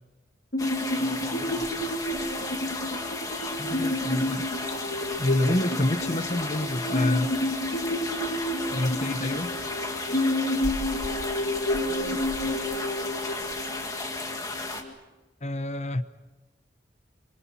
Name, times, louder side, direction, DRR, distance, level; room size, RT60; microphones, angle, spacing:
sound 1, 0.5-14.9, left 1 dB, 55° left, 2.2 m, -30 dB
sound 2, 0.6-14.8, left 2 dB, 20° left, 2.1 m, -34 dB
voice 1, 0.9-1.9 11.8-12.6, right 1 dB, 35° right, -2 dB, 3.5 m, -43 dB
voice 2, 3.4-4.4 5.2-7.3 8.7-9.5 15.4-16.0, left 1 dB, 35° left, 11 dB, 0.9 m, -28 dB
27.0 x 25.5 x 5.9 m, 1.1 s
head